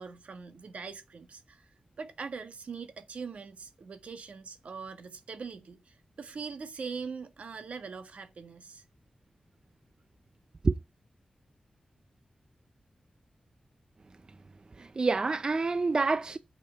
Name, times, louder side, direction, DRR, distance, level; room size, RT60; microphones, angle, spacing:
voice 1, 0.0-1.7 2.0-8.8, right 5 dB, 75° right, 1.5 m, -42 dB
voice 2, 14.8-16.4, right 3 dB, 35° right, 0.5 m, -27 dB
8.3 x 6.7 x 6.9 m
wide cardioid pair, 140°, 2 cm